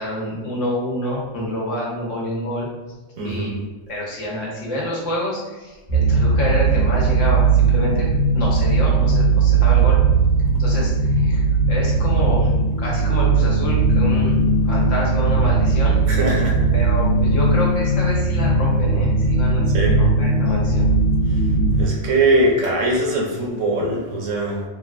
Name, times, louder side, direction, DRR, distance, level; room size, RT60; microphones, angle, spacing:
voice 1, 0.0-2.7 3.2-3.5 3.9-8.1 8.3-10.0 10.6-11.4 11.7-14.3 14.6-15.9 16.7-19.6 20.0-20.8, left 1 dB, 80° left, -4 dB, 1.2 m, -27 dB
voice 2, 3.2-3.6 16.1-16.6 19.7-20.0 21.8-24.6, right 1 dB, 90° right, -1 dB, 1.0 m, -21 dB
sound 1, 5.9-21.8, right 3 dB, 50° left, 0.8 m, -18 dB
3.3 x 2.4 x 2.3 m, 1.2 s
omnidirectional pair, 1.3 m